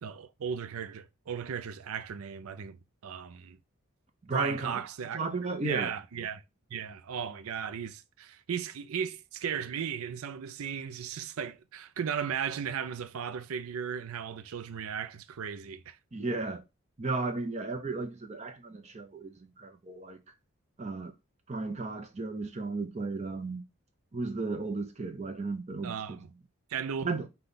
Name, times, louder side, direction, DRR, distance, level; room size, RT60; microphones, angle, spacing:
voice 1, 0.0-3.6 4.3-5.2 5.6-6.4 6.7-16.0 25.8-26.3 26.7-27.1, right 7 dB, 75° right, 0.4 m, -36 dB
voice 2, 4.2-4.8 5.1-5.9 16.1-16.6 17.0-20.2 20.8-21.1 21.5-23.6 24.1-26.2 27.0-27.3, right 3 dB, 30° right, 0.6 m, -34 dB
5.4 x 2.3 x 3.8 m
head